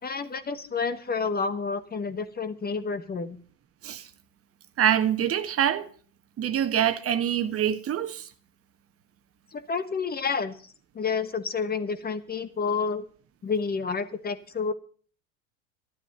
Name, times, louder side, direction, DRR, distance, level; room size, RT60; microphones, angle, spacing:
voice 1, 0.0-3.4 9.5-13.0 13.4-14.7, left 5 dB, 20° left, 1.2 m, -30 dB
voice 2, 4.8-5.9 6.4-8.3, right 10 dB, 35° right, 1.4 m, -25 dB
12.5 x 12.0 x 5.4 m
hypercardioid pair, 90°, 42 cm